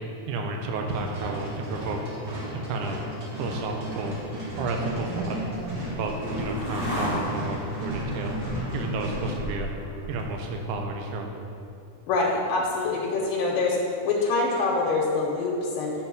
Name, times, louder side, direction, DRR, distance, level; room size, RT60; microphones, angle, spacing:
voice 1, 0.3-2.0 2.5-3.0 3.4-4.2 4.6-5.4 5.9-8.4 8.7-9.7 10.1-11.3, right 3 dB, 75° right, 2 dB, 2.1 m, -31 dB
sound 1, 0.9-9.3, equal, 60° right, 1.0 m, -35 dB
sound 2, 3.5-10.9, equal, 55° left, 0.3 m, -35 dB
voice 2, 12.1-13.8 14.0-15.9, left 3 dB, 90° left, -2 dB, 2.4 m, -25 dB
8.0 x 4.0 x 6.0 m, 2.6 s
omnidirectional pair, 3.8 m